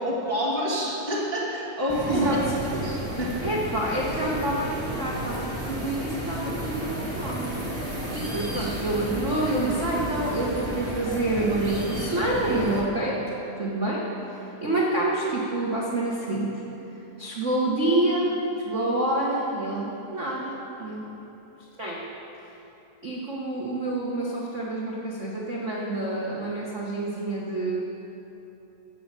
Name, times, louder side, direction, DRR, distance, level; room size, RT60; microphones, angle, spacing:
voice 1, 0.0-2.4 2.7-3.3, equal, 15° left, -5 dB, 0.7 m, -28 dB
sound 1, 1.9-12.8, equal, 25° right, 0.6 m, -32 dB
voice 2, 2.1-2.4 3.4-7.6 8.1-16.6 17.2-18.4 18.6-21.1 21.8-22.1 23.0-27.8, right 2 dB, 70° right, -5 dB, 0.7 m, -27 dB
15.5 x 5.5 x 7.5 m, 3.0 s
omnidirectional pair, 3.5 m